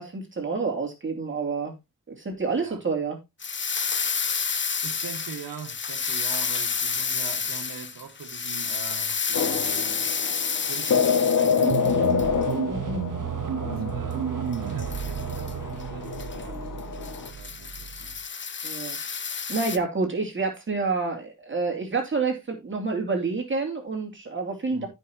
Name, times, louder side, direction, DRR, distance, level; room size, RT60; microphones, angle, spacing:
voice 1, 0.0-1.7 2.1-3.2 12.7-13.0 18.6-19.0 19.2-24.9, right 4 dB, 35° right, 2.7 m, -28 dB
sound 1, 3.4-12.3 14.5-15.5 15.8-15.9 16.1-16.4 16.8-19.8, left 5 dB, 35° left, 0.8 m, -30 dB
voice 2, 4.8-10.1 10.7-11.6 12.1-12.4 13.4-18.2 24.7-24.9, right 5 dB, 80° right, 1.7 m, -43 dB
sound 2, 9.3-17.3, left 6 dB, 65° left, 2.0 m, -27 dB
sound 3, 11.6-18.2, right 9 dB, 65° right, 1.0 m, -32 dB
15.0 x 5.5 x 2.9 m
cardioid pair, 75°, 34 cm